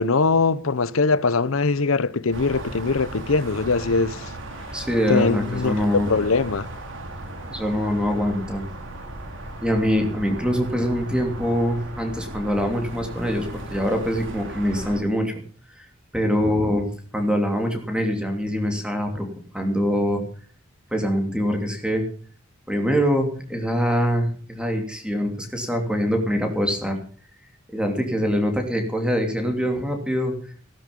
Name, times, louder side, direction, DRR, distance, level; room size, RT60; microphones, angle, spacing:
voice 1, 0.0-4.3 5.1-5.8 6.1-6.7, left 4 dB, 75° left, 0.8 m, -21 dB
sound 1, 2.3-15.0, right 1 dB, 65° right, 3.6 m, -36 dB
voice 2, 4.7-6.1 7.5-8.7 9.6-15.3 15.8-15.9 16.1-19.3 19.5-20.2 20.9-22.1 22.7-27.0 27.7-30.5, equal, 5° right, 2.9 m, -24 dB
16.5 x 12.5 x 5.4 m
head